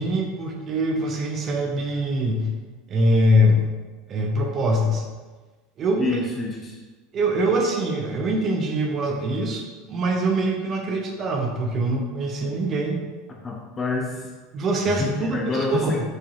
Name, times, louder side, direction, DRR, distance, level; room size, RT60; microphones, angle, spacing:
voice 1, 0.0-2.5 2.9-3.7 4.1-5.0 5.8-6.2 7.1-13.0 14.5-16.0, equal, 35° right, 2 dB, 0.8 m, -23 dB
voice 2, 6.0-6.8 13.4-14.1 14.9-16.0, left 3 dB, 25° left, -1 dB, 0.6 m, -27 dB
5.1 x 4.0 x 2.5 m, 1.3 s
figure-of-eight pair, 75°, 0 cm